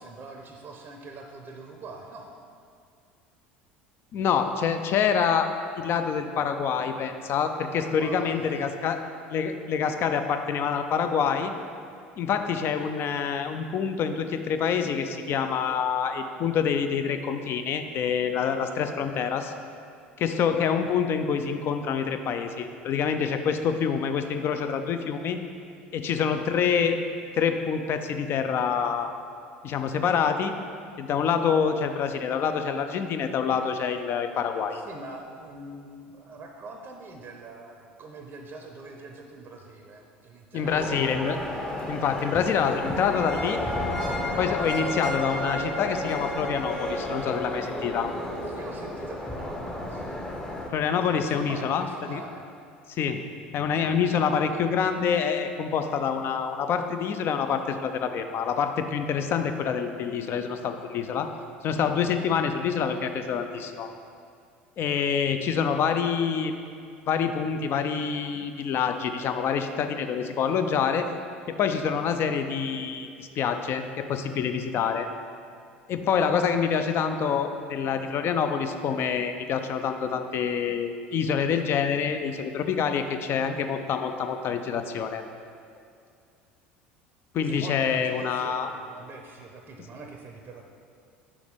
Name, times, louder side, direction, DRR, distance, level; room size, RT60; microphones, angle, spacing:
voice 1, 0.0-2.3 7.6-8.7 34.7-41.1 48.4-50.3 50.6-52.5 87.4-90.6, right 3 dB, 35° right, 2 dB, 0.6 m, -43 dB
voice 2, 4.1-5.5 5.8-9.0 9.3-11.5 12.2-19.5 20.2-25.4 25.9-27.0 27.3-29.1 29.6-30.5 31.0-34.8 40.5-41.4 41.9-43.6 44.4-48.1 50.7-52.2 53.0-53.2 53.5-61.3 61.6-63.9 64.8-66.6 67.1-71.1 71.5-75.1 75.9-85.2 87.3-88.7, left 7 dB, 40° left, 8 dB, 0.4 m, -26 dB
sound 1, 40.6-50.7, left 1 dB, 10° left, 0.7 m, -32 dB
4.9 x 4.2 x 5.4 m, 2.3 s
figure-of-eight pair, 70°, 6 cm